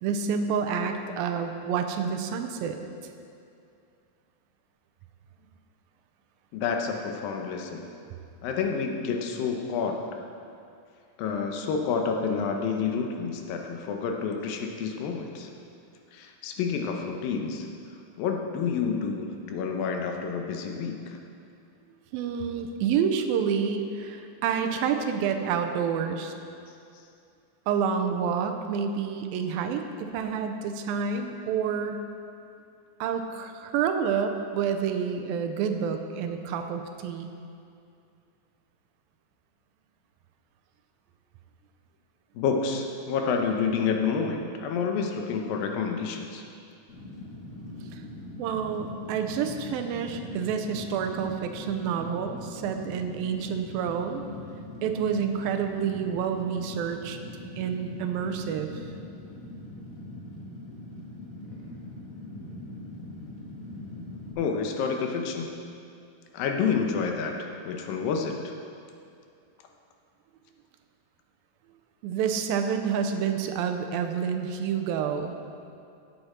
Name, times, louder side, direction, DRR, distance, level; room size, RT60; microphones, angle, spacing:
voice 1, 0.0-2.8 22.1-26.3 27.7-32.0 33.0-37.3 47.9-48.0 48.4-54.3 54.8-57.2 57.6-58.7 72.0-75.4, right 7 dB, 90° right, 6 dB, 2.5 m, -28 dB
voice 2, 6.5-7.9 8.4-10.0 11.2-15.5 16.1-17.7 18.2-21.2 42.4-46.4 64.4-65.5 66.3-68.5, left 5 dB, 75° left, 3 dB, 2.6 m, -29 dB
Fire, 46.9-64.3, left 1 dB, 45° left, 1.1 m, -41 dB
16.0 x 8.2 x 4.3 m, 2.5 s
omnidirectional pair, 4.2 m